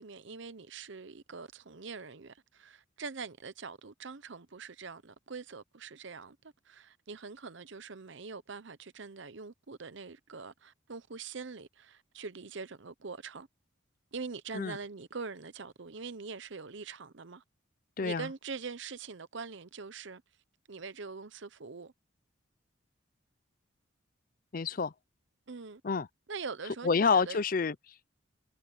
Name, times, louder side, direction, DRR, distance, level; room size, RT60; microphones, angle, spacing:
voice 1, 0.0-6.4 6.6-13.5 14.1-17.4 18.0-20.2 20.7-21.9 25.5-25.8 26.3-27.4, right 4 dB, 60° right, 0.8 m, -43 dB
voice 2, 18.0-18.3 24.5-24.9 25.8-26.1 26.8-28.1, left 5 dB, 40° left, 0.5 m, -28 dB
head